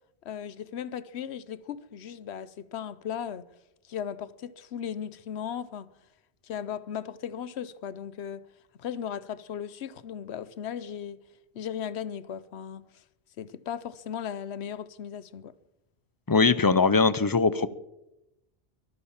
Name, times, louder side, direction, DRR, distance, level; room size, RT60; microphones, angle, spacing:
voice 1, 0.2-3.5 3.9-5.9 6.4-8.5 8.8-11.2 11.5-13.0 13.4-15.5, left 8 dB, 80° left, 1.0 m, -37 dB
voice 2, 16.3-17.7, left 4 dB, 25° left, 0.5 m, -21 dB
23.0 x 8.7 x 7.3 m
omnidirectional pair, 1.1 m